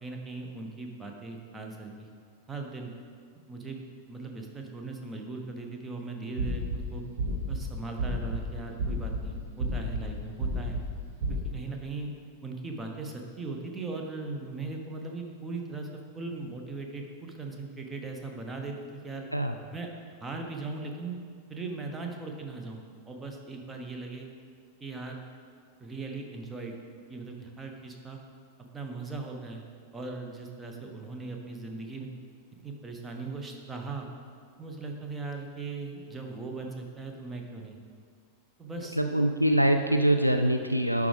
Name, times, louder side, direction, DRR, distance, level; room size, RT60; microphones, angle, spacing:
voice 1, 0.0-2.1 2.5-2.9 3.5-3.8 4.1-7.0 7.5-10.8 11.3-12.1 12.4-19.3 19.7-19.9 20.2-21.2 21.5-24.3 24.8-25.2 25.8-26.8 27.1-28.2 28.6-29.6 29.9-32.1 32.6-34.1 34.6-37.8 38.6-39.0, right 3 dB, 15° right, 2 dB, 0.9 m, -39 dB
sound 1, 6.4-6.8 7.2-7.6 8.0-8.4 8.8-9.2 9.6-10.0 10.4-10.8 11.2-11.4, right 2 dB, 55° right, 1.2 m, -30 dB
voice 2, 39.0-41.1, right 1 dB, 90° right, 6 dB, 0.3 m, -24 dB
11.0 x 4.9 x 3.4 m, 2.1 s
figure-of-eight pair, 90°, 0 cm